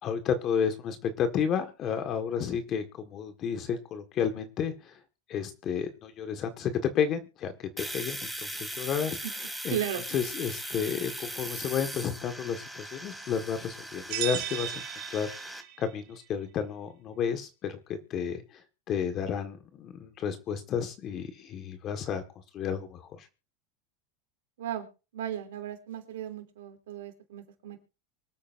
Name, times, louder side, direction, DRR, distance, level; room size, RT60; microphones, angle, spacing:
voice 1, 0.0-4.9 5.3-9.2 9.6-9.8 10.1-14.8 15.1-18.6 18.9-22.2 22.5-23.3, left 7 dB, 40° left, 7 dB, 1.7 m, -31 dB
Domestic sounds home sounds, 7.8-15.6, equal, ahead, 2.4 m, -39 dB
voice 2, 9.7-10.0 24.6-24.9 25.1-27.8, right 10 dB, 80° right, 5 dB, 3.0 m, -35 dB
sound 1, 14.1-15.9, right 12 dB, 60° right, 3.8 m, -35 dB
24.5 x 8.5 x 2.6 m, 0.33 s
hypercardioid pair, 105°, 0 cm